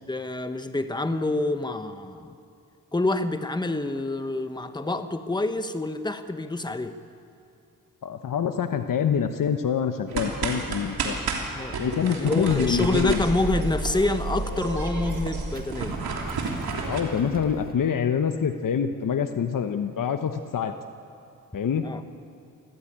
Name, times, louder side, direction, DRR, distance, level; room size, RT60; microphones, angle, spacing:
voice 1, 0.1-2.3 2.9-7.0 11.5-16.0 21.8-22.0, left 2 dB, 10° left, 9 dB, 1.2 m, -27 dB
voice 2, 8.0-11.2 11.8-13.2 16.8-20.7 21.5-21.9, left 7 dB, 60° left, 7 dB, 1.0 m, -26 dB
sound 1, 10.1-17.0, right 4 dB, 90° right, 3.2 m, -31 dB
Child speech kid speaking, 12.4-17.7, right 2 dB, 25° right, 1.9 m, -36 dB
25.5 x 15.0 x 8.8 m, 2.6 s
cardioid pair, 80°, 36 cm